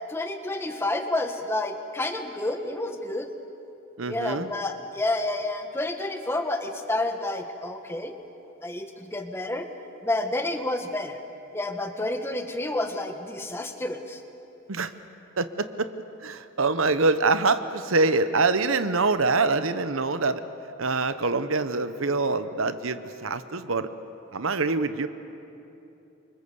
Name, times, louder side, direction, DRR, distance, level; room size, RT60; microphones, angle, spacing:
voice 1, 0.0-3.3 4.1-8.1 8.6-9.7 10.0-11.2 11.5-14.2, left 2 dB, 10° left, 6 dB, 1.3 m, -29 dB
voice 2, 4.0-4.5 14.7-14.9 15.4-15.9 16.2-20.4 20.8-23.9 24.3-25.1, right 3 dB, 70° right, 11 dB, 1.0 m, -25 dB
28.5 x 24.5 x 7.0 m, 2.9 s
head